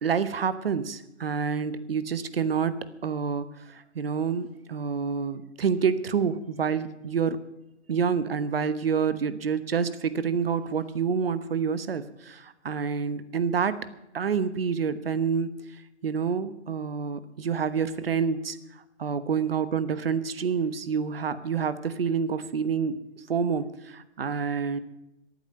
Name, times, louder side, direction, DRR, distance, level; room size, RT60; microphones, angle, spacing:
voice 1, 0.0-7.4 7.9-13.8 14.1-15.5 16.0-18.6 19.0-23.0 23.3-24.8, right 6 dB, 55° right, 14 dB, 1.1 m, -28 dB
14.0 x 9.2 x 7.6 m, 0.90 s
hypercardioid pair, 170°, 35 cm